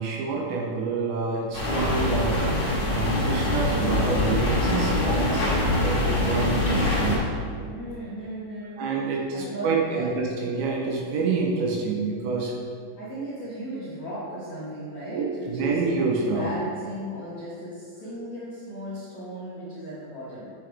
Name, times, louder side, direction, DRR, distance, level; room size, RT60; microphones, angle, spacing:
voice 1, 0.0-2.4 2.9-7.3 8.8-12.5 15.1-16.5, right 4 dB, 75° right, -1 dB, 3.0 m, -27 dB
sound 1, 1.5-7.2, left 1 dB, 40° left, 2.8 m, -24 dB
voice 2, 7.7-8.9 9.3-10.1 13.0-15.8 16.2-20.5, right 1 dB, 60° left, -10 dB, 1.9 m, -36 dB
9.3 x 8.8 x 3.5 m, 2.2 s
omnidirectional pair, 5.7 m